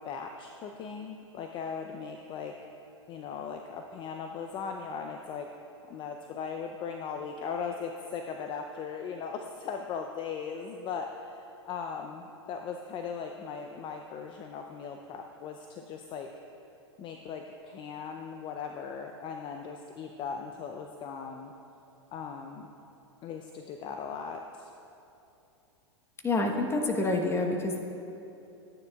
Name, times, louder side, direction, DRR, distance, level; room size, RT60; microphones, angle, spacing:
voice 1, 0.0-2.5 3.1-5.5 5.9-16.3 17.0-21.5 22.1-22.7 23.2-24.7, left 6 dB, 35° left, 4 dB, 0.5 m, -38 dB
voice 2, 26.2-27.8, left 2 dB, 15° left, 2 dB, 1.1 m, -27 dB
13.5 x 9.3 x 2.3 m, 2.8 s
hypercardioid pair, 105°, 15 cm